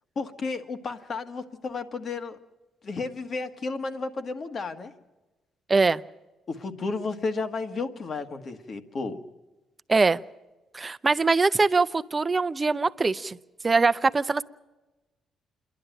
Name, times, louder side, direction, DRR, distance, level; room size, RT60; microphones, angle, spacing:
voice 1, 0.1-2.4 2.8-4.9 6.5-9.2, left 4 dB, 50° left, 7 dB, 1.6 m, -32 dB
voice 2, 5.7-6.0 9.9-10.2 10.7-13.4 13.6-14.4, right 4 dB, 25° right, 13 dB, 0.6 m, -22 dB
27.5 x 11.5 x 9.1 m, 1.1 s
cardioid pair, 90°, 0 cm